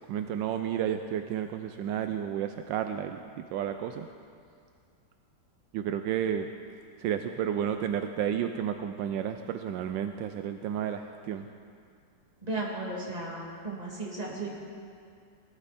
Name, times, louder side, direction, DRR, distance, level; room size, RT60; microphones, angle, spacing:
voice 1, 0.1-4.1 5.7-6.5 7.0-11.5, right 9 dB, 80° right, 8 dB, 1.2 m, -31 dB
voice 2, 12.4-13.4 13.6-14.5, right 2 dB, 20° right, -4 dB, 2.5 m, -34 dB
18.5 x 12.5 x 4.2 m, 2.3 s
omnidirectional pair, 2.0 m